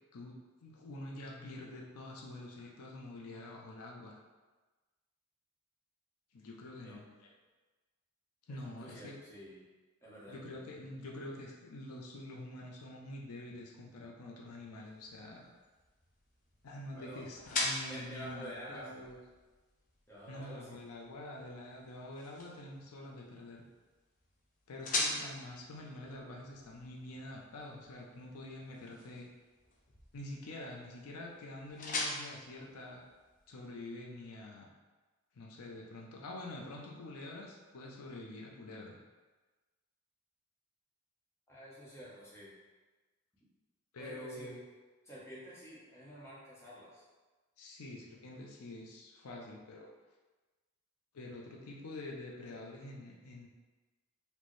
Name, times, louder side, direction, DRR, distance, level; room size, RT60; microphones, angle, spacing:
voice 1, 0.1-4.2 6.3-7.3 8.5-9.2 10.3-15.5 16.6-19.2 20.3-23.6 24.7-29.3 30.1-33.0 33.5-34.7 35.3-39.0 43.9-44.6 47.6-49.9 51.1-53.5, left 1 dB, 85° left, -1 dB, 0.5 m, -46 dB
voice 2, 8.5-9.6 10.0-10.6 16.9-17.3 17.9-19.0 20.1-20.8 41.5-42.5 44.0-44.6 45.0-47.0, equal, 10° left, -8 dB, 0.8 m, -49 dB
sound 1, 14.8-33.6, left 2 dB, 35° left, 0.5 m, -43 dB
4.3 x 2.1 x 3.1 m, 1.3 s
head